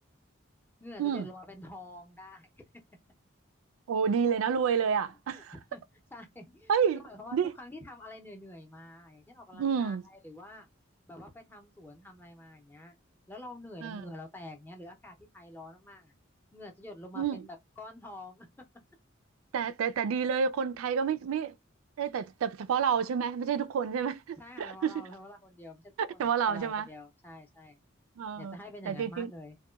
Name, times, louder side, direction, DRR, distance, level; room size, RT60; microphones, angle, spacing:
voice 1, 0.8-2.5 5.3-5.4 5.7-5.8 6.1-10.7 11.1-12.9 13.3-16.1 16.5-18.7 24.4-27.8 28.3-29.6, left 1 dB, 10° left, 0.5 m, -47 dB
voice 2, 3.9-5.5 6.7-7.0 7.3-7.5 9.5-10.0 13.8-14.0 17.1-17.4 19.5-21.5 22.0-25.0 26.0-26.9 28.2-28.6 28.9-29.3, right 7 dB, 90° right, 0.3 m, -29 dB
2.8 x 2.2 x 2.2 m
head